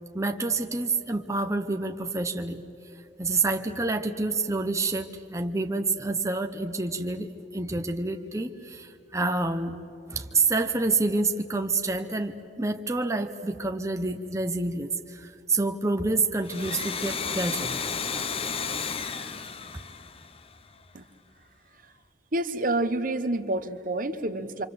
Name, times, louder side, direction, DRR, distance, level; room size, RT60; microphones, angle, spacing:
voice 1, 0.1-2.6 3.2-9.8 10.1-17.8 18.1-18.8, right 3 dB, 20° right, 5 dB, 0.9 m, -28 dB
Domestic sounds home sounds, 16.4-20.9, left 5 dB, 35° left, 0.9 m, -33 dB
voice 2, 22.3-24.6, right 2 dB, 50° right, 10 dB, 1.1 m, -28 dB
27.5 x 25.5 x 7.8 m, 2.7 s
head